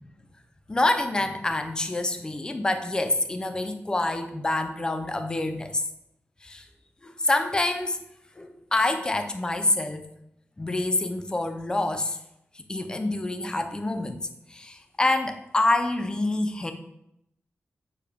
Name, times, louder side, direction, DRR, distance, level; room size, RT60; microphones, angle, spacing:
voice 1, 0.7-5.8 6.4-6.6 7.0-8.0 8.4-10.0 10.6-12.2 12.6-16.7, left 2 dB, 20° left, 7 dB, 0.4 m, -27 dB
6.5 x 2.2 x 3.4 m, 0.79 s
wide cardioid pair, 140°, 5 cm